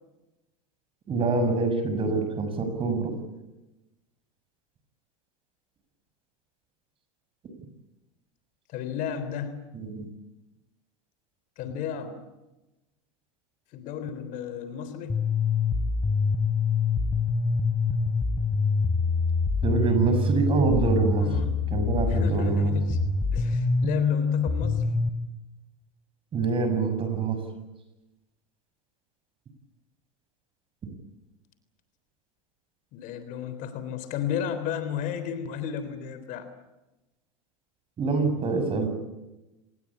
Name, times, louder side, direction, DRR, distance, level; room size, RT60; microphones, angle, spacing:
voice 1, 1.1-3.1 9.7-10.0 19.6-21.3 21.7-22.7 26.3-27.4 38.0-38.9, right 4 dB, 30° right, 8 dB, 6.6 m, -25 dB
voice 2, 8.7-9.6 11.6-12.2 13.7-15.2 21.0-21.6 22.1-23.0 23.3-24.9 32.9-36.5, left 8 dB, 50° left, 11 dB, 3.6 m, -33 dB
sound 1, 15.1-25.1, left 4 dB, 15° left, 3.4 m, -25 dB
26.5 x 20.0 x 8.6 m, 1.0 s
hypercardioid pair, 110°, 17 cm